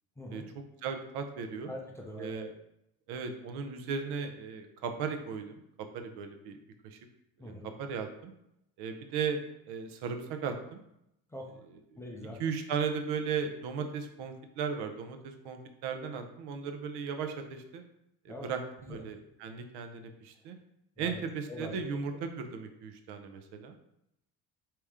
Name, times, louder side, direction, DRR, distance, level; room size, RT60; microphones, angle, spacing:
voice 1, 0.2-0.5 1.7-2.5 7.4-7.7 11.3-11.6 12.0-12.4 18.3-18.5 18.9-19.0 21.0-21.2 21.5-21.7, left 1 dB, 10° left, -1 dB, 0.4 m, -43 dB
voice 2, 0.8-1.7 2.2-2.5 3.1-6.6 6.8-7.0 7.4-7.5 7.8-8.3 8.8-9.4 9.7-10.8 11.9-12.0 12.4-17.8 18.2-18.6 18.9-20.6 21.0-23.8, right 6 dB, 80° right, 7 dB, 0.7 m, -36 dB
4.9 x 2.9 x 3.5 m, 0.80 s
cardioid pair, 155°, 39 cm